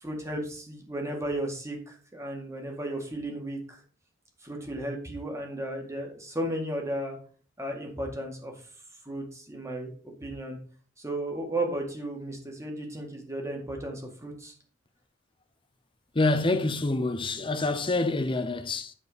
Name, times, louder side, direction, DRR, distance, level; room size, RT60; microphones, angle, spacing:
voice 1, 0.0-3.6 4.4-7.2 7.6-8.5 9.1-9.9 10.2-10.6 11.0-14.5, right 1 dB, 15° right, 1.8 m, -34 dB
voice 2, 16.1-18.9, left 2 dB, 25° left, 0.7 m, -26 dB
8.6 x 4.4 x 5.1 m
head